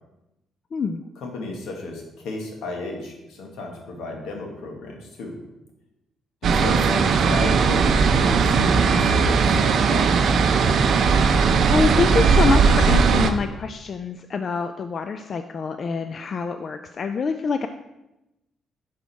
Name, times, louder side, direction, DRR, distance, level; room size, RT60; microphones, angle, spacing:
voice 1, 0.7-1.0 11.3-17.7, left 5 dB, 50° left, 8 dB, 0.3 m, -26 dB
voice 2, 1.2-5.4 6.4-10.2, left 2 dB, 80° left, 1 dB, 1.3 m, -33 dB
sound 1, 6.4-13.3, right 5 dB, 65° right, 0.5 m, -18 dB
6.1 x 4.9 x 4.0 m, 0.93 s
cardioid pair, 90°, 0 cm